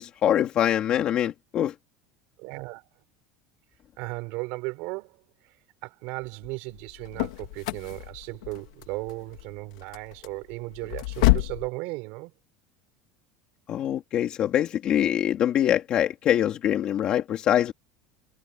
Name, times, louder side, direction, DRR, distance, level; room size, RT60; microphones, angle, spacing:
voice 1, 0.0-1.7 13.7-17.7, left 10 dB, 30° left, 2.6 m, -24 dB
voice 2, 2.4-2.9 4.0-5.2 5.4-5.5 5.8-12.3, right 25 dB, 50° right, 5.0 m, -36 dB
sound 1, 6.7-11.7, left 20 dB, 85° left, 2.1 m, -28 dB
cardioid pair, 180°, 3 cm